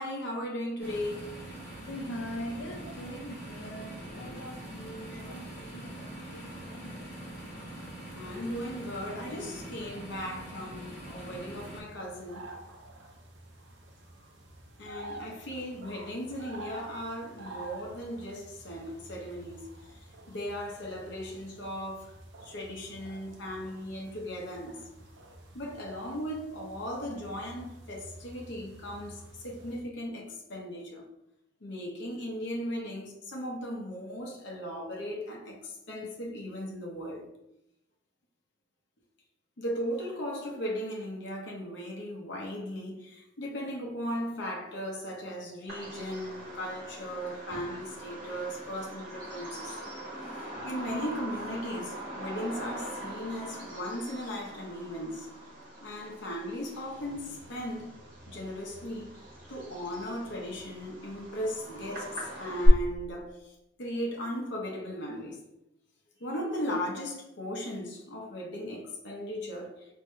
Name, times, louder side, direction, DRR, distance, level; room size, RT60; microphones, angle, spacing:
voice 1, 0.0-1.4 5.1-5.4 8.1-12.5 14.8-19.7 20.3-22.2 22.4-24.9 25.5-31.0 31.6-37.3 39.6-49.8 50.6-55.3 55.8-58.0 58.3-59.1 59.5-63.5 63.8-65.4 66.2-69.8, equal, 60° left, 0.8 m, -37 dB
sound 1, 0.8-11.8, right 1 dB, 20° left, 1.2 m, -43 dB
voice 2, 1.8-7.0, equal, 90° left, 0.5 m, -42 dB
sound 2, 11.8-29.8, right 1 dB, 70° right, 0.6 m, -49 dB
Bird vocalization bird call bird song, 45.7-62.7, right 1 dB, 50° right, 1.3 m, -40 dB
4.6 x 2.7 x 2.2 m
head